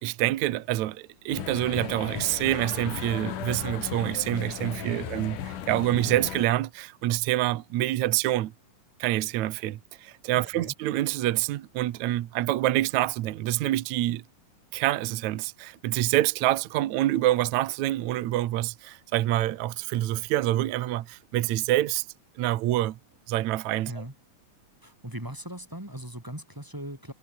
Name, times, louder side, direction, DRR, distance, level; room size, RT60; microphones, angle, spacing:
voice 1, 0.0-8.5 9.0-14.2 14.7-22.0 22.4-23.0 23.3-24.0, right 15 dB, 65° right, 2.1 m, -26 dB
sound 1, 1.3-6.5, left 10 dB, 65° left, 3.4 m, -36 dB
voice 2, 4.8-5.1 10.5-10.7 23.9-24.1 24.8-27.1, right 1 dB, 5° right, 2.0 m, -39 dB
omnidirectional pair, 4.0 m